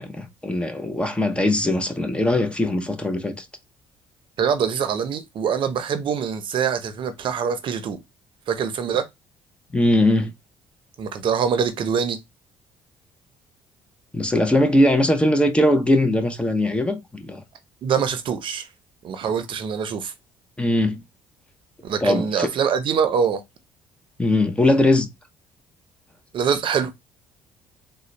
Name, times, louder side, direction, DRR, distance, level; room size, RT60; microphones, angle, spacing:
voice 1, 0.0-3.5 9.7-10.3 14.1-17.4 20.6-21.0 22.0-22.5 24.2-25.1, left 1 dB, 10° left, 0.7 m, -20 dB
voice 2, 4.4-8.0 8.5-9.1 11.0-12.2 17.8-18.7 19.0-20.1 21.8-23.4 26.3-26.9, right 7 dB, 55° right, 0.7 m, -24 dB
3.8 x 2.2 x 3.2 m
supercardioid pair, 80°, 10 cm